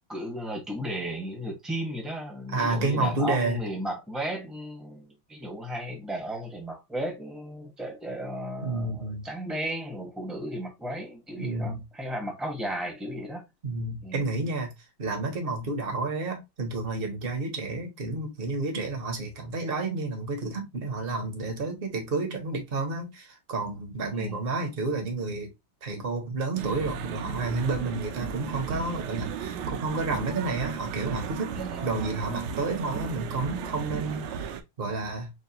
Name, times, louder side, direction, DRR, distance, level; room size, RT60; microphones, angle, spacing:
voice 1, 0.1-13.4 14.0-14.2 24.1-24.5 28.7-29.0 31.5-31.9, right 1 dB, ahead, 0.5 m, -35 dB
voice 2, 2.5-3.6 8.6-9.2 11.4-11.8 13.6-14.7 15.0-25.5 25.8-35.3, right 3 dB, 45° right, 0.7 m, -30 dB
sound 1, 26.6-34.6, right 7 dB, 75° right, 1.1 m, -35 dB
5.7 x 2.1 x 2.7 m
omnidirectional pair, 2.3 m